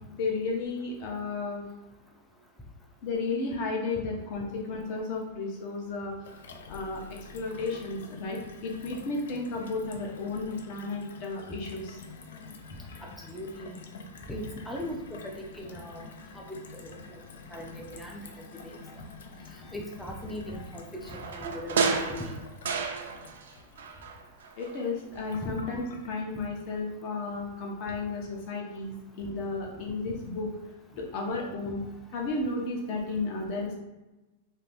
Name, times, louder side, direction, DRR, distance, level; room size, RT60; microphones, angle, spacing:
voice 1, 0.1-1.6 3.0-6.4 6.7-12.0 24.6-30.5 31.0-31.8 32.1-33.7, left 3 dB, 45° left, 0 dB, 0.8 m, -33 dB
Gurgling / Water tap faucet / Sink (filling or washing), 6.2-26.2, left 4 dB, 85° left, 0.4 m, -48 dB
voice 2, 13.2-13.8 14.3-16.0 16.3-17.2 17.5-18.3 18.6-18.8 19.7-22.4 25.4-25.5, equal, 5° left, -1 dB, 0.4 m, -39 dB
sound 1, 21.1-23.5 23.8-24.9 25.2-25.3, right 5 dB, 90° right, 0.4 m, -31 dB
2.7 x 2.6 x 3.3 m, 1.1 s
supercardioid pair, 155°, 0 cm